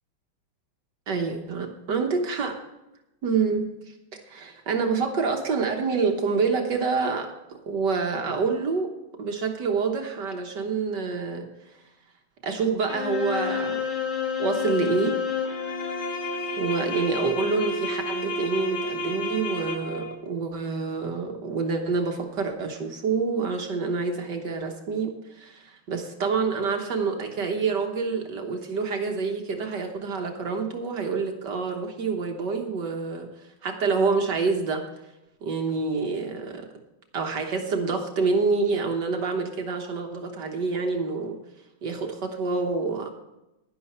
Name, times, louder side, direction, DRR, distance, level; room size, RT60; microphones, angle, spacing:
voice 1, 1.1-2.5 3.2-3.7 4.3-8.9 9.2-11.5 12.4-13.8 14.4-15.1 16.6-33.3 33.6-34.9 35.4-36.7 37.1-41.4 41.8-43.1, right 4 dB, 60° right, 3 dB, 1.6 m, -27 dB
sound 1, 12.9-20.1, left 4 dB, 40° left, 1.6 m, -30 dB
11.0 x 11.0 x 4.3 m, 0.95 s
omnidirectional pair, 2.3 m